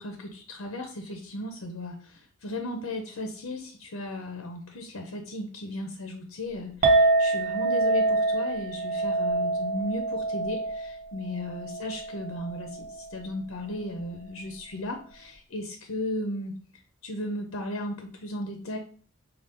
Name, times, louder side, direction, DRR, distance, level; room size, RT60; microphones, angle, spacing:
voice 1, 0.0-2.0 2.4-16.5 17.0-18.8, left 1 dB, 90° left, 4 dB, 0.7 m, -35 dB
Chink clink, 6.8-13.1, right 2 dB, 40° right, 0.8 m, -26 dB
5.3 x 2.4 x 3.5 m, 0.43 s
head